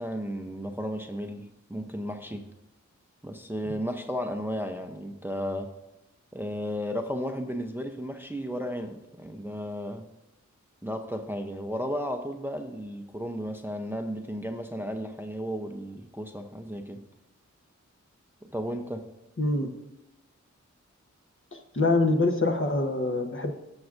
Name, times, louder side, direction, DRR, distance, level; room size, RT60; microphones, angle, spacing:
voice 1, 0.0-2.5 3.2-5.7 6.3-10.1 10.8-17.0 18.4-19.1, equal, 5° right, 5 dB, 0.6 m, -34 dB
voice 2, 19.4-19.8 21.5-23.5, left 2 dB, 45° left, 4 dB, 1.0 m, -25 dB
16.5 x 6.2 x 2.5 m, 0.96 s
wide cardioid pair, 60°, 30 cm